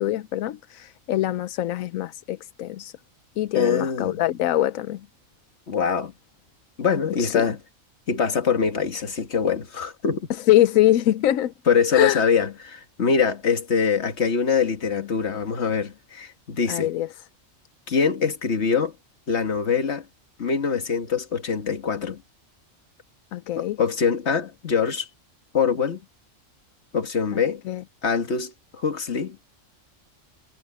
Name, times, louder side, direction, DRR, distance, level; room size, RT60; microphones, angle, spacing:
voice 1, 0.0-2.9 3.4-5.0 7.2-7.5 10.5-11.5 11.9-12.2 16.7-17.1 23.3-23.8 27.3-27.4 27.7-27.8, left 14 dB, 90° left, 1.0 m, -23 dB
voice 2, 3.5-4.2 5.7-6.1 6.8-7.6 8.1-10.3 11.7-16.9 17.9-18.9 19.3-20.1 20.4-22.2 23.6-25.1 25.5-26.0 26.9-27.6 28.0-29.4, left 6 dB, 55° left, 1.9 m, -24 dB
omnidirectional pair, 1.4 m